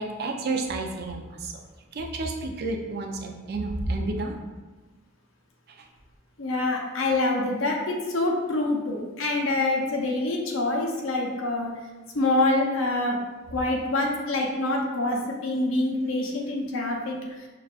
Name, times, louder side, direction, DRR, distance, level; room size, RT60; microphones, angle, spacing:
voice 1, 0.0-1.6 1.9-4.5 5.7-5.8, right 2 dB, 50° right, 2 dB, 0.4 m, -31 dB
voice 2, 6.4-11.7 12.1-13.2 13.5-17.2, left 2 dB, 70° left, 0 dB, 0.6 m, -26 dB
5.7 x 2.3 x 2.4 m, 1.2 s
head